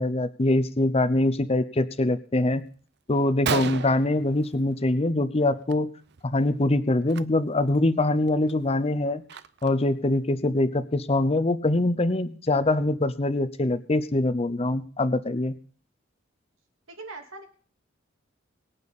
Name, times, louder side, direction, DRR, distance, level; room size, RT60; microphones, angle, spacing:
voice 1, 0.0-2.7 3.1-5.9 6.2-9.2 9.6-15.6, left 2 dB, 30° left, 12 dB, 0.7 m, -24 dB
Gunshot gunfire, 2.8-2.9 3.2-3.3 3.5-5.1 5.4-5.7 6.0-6.2 7.0-7.2 7.7-7.8 8.3-9.9, right 6 dB, 60° right, 0.6 m, -33 dB
voice 2, 16.9-17.5, right 3 dB, 85° right, 4 dB, 2.7 m, -40 dB
22.5 x 9.0 x 4.2 m, 0.43 s
head